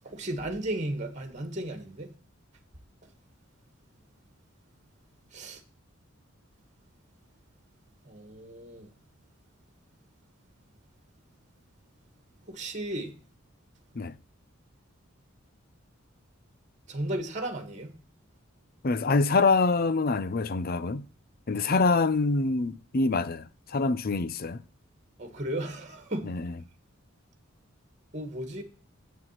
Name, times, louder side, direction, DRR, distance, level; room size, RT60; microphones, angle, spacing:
voice 1, 0.0-2.1 5.3-5.6 8.1-8.9 12.5-13.1 16.9-17.9 21.5-21.7 25.2-26.3 28.1-28.6, right 1 dB, 35° right, 1.9 m, -35 dB
voice 2, 18.8-21.0 21.5-23.4 23.7-24.6 26.2-26.5, left 3 dB, 45° left, 0.6 m, -25 dB
8.2 x 7.4 x 5.8 m
head